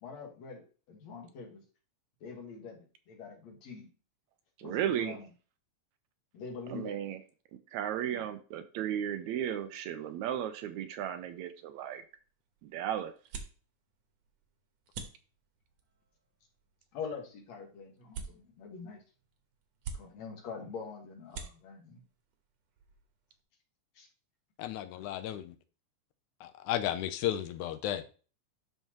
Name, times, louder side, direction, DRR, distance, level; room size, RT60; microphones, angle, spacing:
voice 1, 0.0-1.6 2.2-3.9 4.6-5.3 6.3-7.0 8.1-8.2 16.9-19.0 19.9-22.0 23.9-24.1, left 5 dB, 65° left, 2.7 m, -44 dB
voice 2, 4.6-5.2 6.7-7.2 7.7-12.0 12.6-13.1, right 10 dB, 80° right, 1.8 m, -35 dB
sound 1, 11.9-23.4, right 5 dB, 65° right, 2.2 m, -50 dB
voice 3, 24.6-25.6 26.4-28.0, left 12 dB, 80° left, 2.0 m, -34 dB
12.0 x 4.5 x 2.9 m
omnidirectional pair, 3.5 m